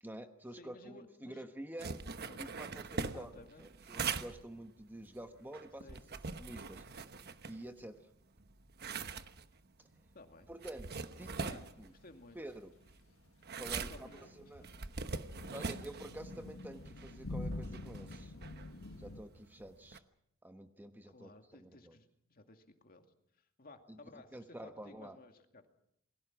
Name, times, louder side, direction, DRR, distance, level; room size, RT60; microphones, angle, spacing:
voice 1, 0.0-1.9 2.4-3.3 3.6-7.1 7.5-8.0 10.5-11.9 12.3-12.7 13.6-14.6 15.5-18.3 19.0-20.0 20.4-22.0 23.9-24.0 24.3-25.2, right 1 dB, 10° right, 7 dB, 1.1 m, -49 dB
voice 2, 0.6-1.5 2.3-2.6 3.0-3.7 5.8-6.0 10.1-10.5 11.3-11.7 12.0-12.4 13.7-14.3 14.6-14.7 21.1-23.1 23.4-25.7, left 2 dB, 45° left, 5 dB, 2.4 m, -56 dB
sound 1, 1.8-8.0 8.4-20.0, right 4 dB, 50° right, 1.1 m, -43 dB
sound 2, 13.8-19.2, left 2 dB, 70° left, 1.4 m, -46 dB
28.5 x 21.5 x 6.1 m, 0.73 s
head